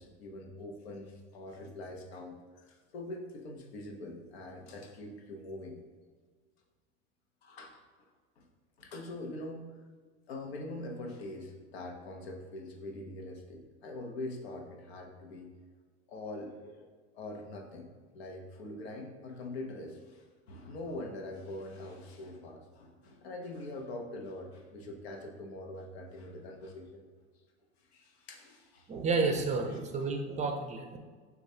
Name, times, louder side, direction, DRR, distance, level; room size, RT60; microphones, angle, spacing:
voice 1, 0.0-5.8 7.4-7.8 8.4-8.5 8.8-9.7 10.3-15.5 16.1-16.9 17.1-17.9 18.1-27.0 27.8-28.9, left 2 dB, 90° left, 2 dB, 0.8 m, -43 dB
voice 2, 28.9-31.0, right 4 dB, 25° right, 4 dB, 0.4 m, -31 dB
6.4 x 2.4 x 2.7 m, 1.5 s
supercardioid pair, 110°, 30 cm